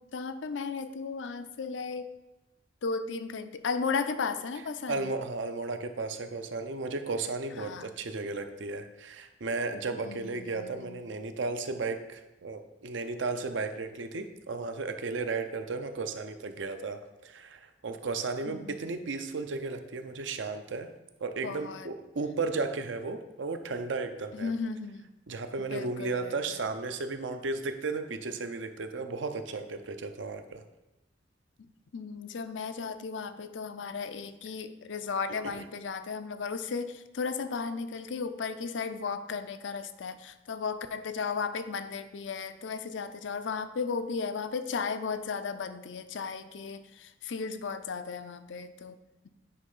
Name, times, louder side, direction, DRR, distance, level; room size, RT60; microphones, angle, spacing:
voice 1, 0.1-2.1 2.8-5.1 7.6-7.9 10.0-11.0 18.5-18.8 21.4-21.9 24.3-25.1 25.7-26.6 31.9-49.0, left 5 dB, 80° left, 11 dB, 0.5 m, -35 dB
voice 2, 4.9-20.9 21.2-24.5 25.3-30.6 35.4-35.7, right 3 dB, 80° right, 7 dB, 0.7 m, -34 dB
9.7 x 3.3 x 5.4 m, 1.0 s
head